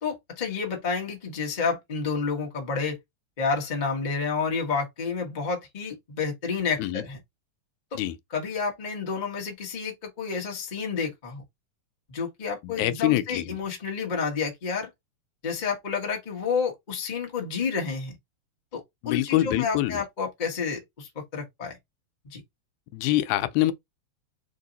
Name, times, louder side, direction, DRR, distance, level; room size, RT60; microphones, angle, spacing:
voice 1, 0.0-3.0 3.4-7.2 7.9-8.0 8.3-11.4 12.1-14.9 15.4-18.2 18.7-21.8 22.2-22.4, left 5 dB, 45° left, 0.5 m, -30 dB
voice 2, 12.6-13.6 19.0-20.0 22.9-23.7, left 15 dB, 85° left, 2.0 m, -25 dB
4.6 x 2.8 x 3.9 m
omnidirectional pair, 3.4 m